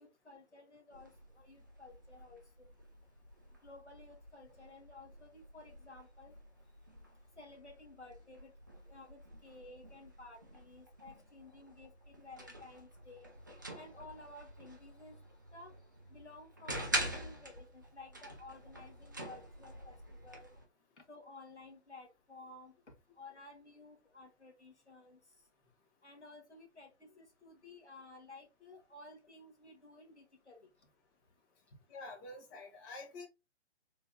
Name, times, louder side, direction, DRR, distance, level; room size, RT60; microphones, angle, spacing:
voice 1, 0.0-2.7 3.6-6.3 7.4-8.5 8.9-13.3 13.7-15.2 15.5-15.7 16.1-20.5 21.0-22.7 23.2-25.2 26.0-30.7, left 2 dB, 80° left, 1.6 m, -55 dB
sound 1, 0.9-20.6, right 1 dB, 20° right, 0.4 m, -46 dB
voice 2, 31.9-33.3, left 2 dB, 20° left, 1.0 m, -47 dB
3.7 x 3.4 x 2.7 m
figure-of-eight pair, 135°, 34 cm